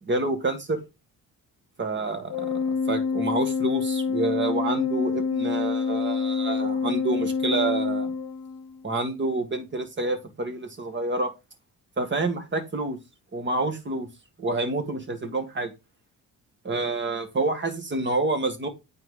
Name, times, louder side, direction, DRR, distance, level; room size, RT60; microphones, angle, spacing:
voice 1, 0.0-0.8 1.8-2.5 2.9-8.1 8.8-11.3 12.0-13.0 13.3-14.1 14.4-15.7 16.6-18.7, right 2 dB, 30° right, 2.0 m, -28 dB
Organ, 2.3-8.8, left 5 dB, 65° left, 0.9 m, -27 dB
9.1 x 4.6 x 3.8 m
cardioid pair, 110°, 36 cm